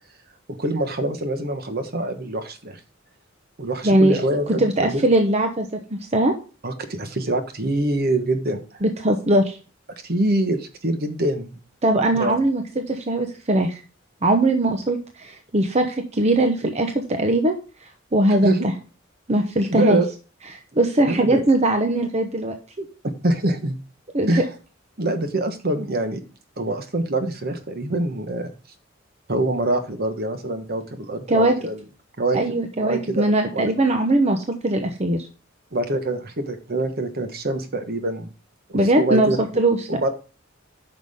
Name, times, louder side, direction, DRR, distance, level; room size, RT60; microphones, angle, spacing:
voice 1, 0.5-2.8 3.6-5.0 6.6-8.8 10.0-11.5 12.2-12.4 18.4-18.7 19.6-20.1 21.1-21.4 23.0-23.7 24.3-24.4 25.0-26.2 26.6-28.5 29.3-31.8 32.2-33.3 33.5-33.7 35.7-38.3 38.7-39.4 39.9-40.1, right 1 dB, 50° right, 8 dB, 1.2 m, -25 dB
voice 2, 3.8-4.2 4.5-6.3 8.8-9.6 11.8-13.8 14.2-17.5 18.1-18.7 19.3-20.0 20.5-22.8 24.1-24.3 31.3-31.5 32.3-35.3 38.7-39.9, right 1 dB, 35° right, 5 dB, 0.9 m, -20 dB
9.6 x 6.0 x 3.6 m, 0.35 s
head